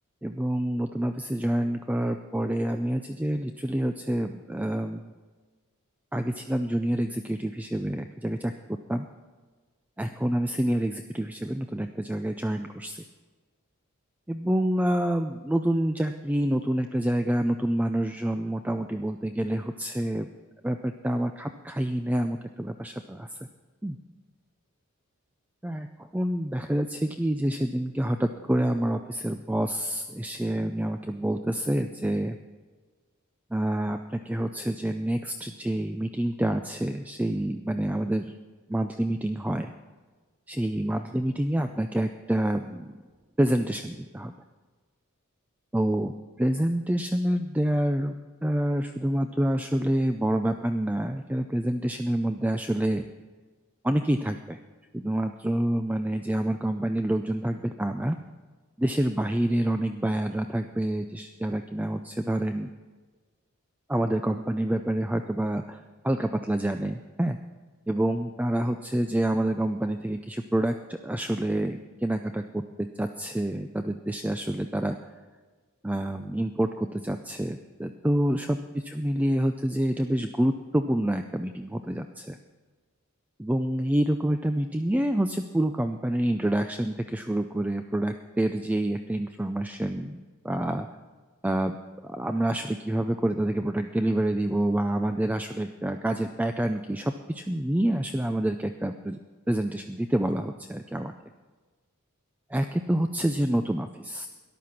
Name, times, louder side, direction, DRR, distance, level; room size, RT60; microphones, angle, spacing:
voice 1, 0.2-5.1 6.1-8.5 8.9-9.1 10.0-13.0 14.3-20.3 20.6-23.5 23.8-24.0 25.6-25.9 26.1-32.4 33.5-38.3 38.7-39.7 40.5-42.9 43.4-44.3 45.7-48.2 48.4-53.0 53.8-54.6 54.9-58.2 58.8-62.7 63.9-67.4 67.9-75.0 75.8-78.6 78.8-82.4 83.4-90.2 90.4-90.9 91.4-91.8 92.0-99.2 99.5-101.1 102.5-104.3, right 1 dB, 5° right, 7 dB, 0.3 m, -27 dB
13.5 x 11.0 x 5.8 m, 1.4 s
head